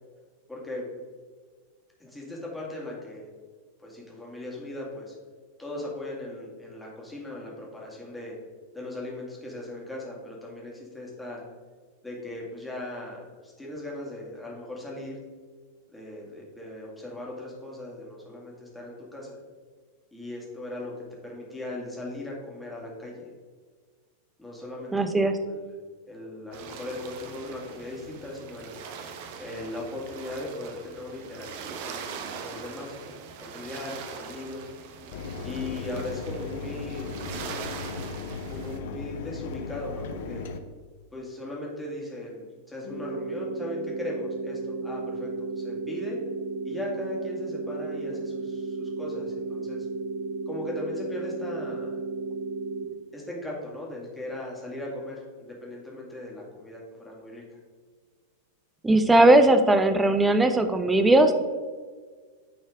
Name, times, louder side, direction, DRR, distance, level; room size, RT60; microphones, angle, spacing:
voice 1, 0.5-0.9 2.0-3.3 3.8-5.2 5.6-8.3 8.7-11.4 12.0-15.2 15.9-19.4 20.1-20.9 21.2-23.3 24.4-25.0 25.5-25.6 26.1-28.7 29.4-34.7 35.4-37.1 38.5-40.4 41.1-46.2 46.6-49.9 50.5-52.0 53.1-57.6, left 1 dB, 5° left, -4 dB, 2.1 m, -38 dB
voice 2, 24.9-25.4 58.8-61.3, right 1 dB, 10° right, 8 dB, 0.6 m, -19 dB
sound 1, 26.5-38.8, right 6 dB, 50° right, 0.7 m, -41 dB
Mechanisms, 35.1-40.6, left 4 dB, 55° left, 0.6 m, -36 dB
sound 2, 42.8-52.8, right 3 dB, 85° left, 1.9 m, -33 dB
9.4 x 4.3 x 3.7 m, 1.5 s
figure-of-eight pair, 90°, 0 cm